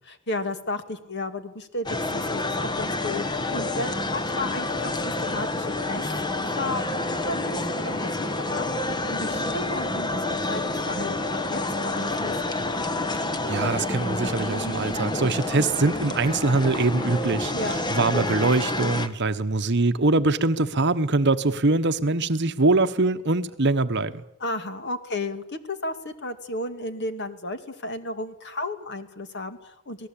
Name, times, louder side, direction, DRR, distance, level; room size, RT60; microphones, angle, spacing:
voice 1, 0.0-6.1 6.6-11.1 11.5-12.5 17.5-17.8 24.4-30.1, left 2 dB, 50° left, 2.1 m, -33 dB
sound 1, 1.9-19.1, left 2 dB, 20° left, 1.2 m, -28 dB
voice 2, 13.1-24.2, right 3 dB, 50° right, 1.1 m, -23 dB
28.0 x 18.5 x 8.7 m
head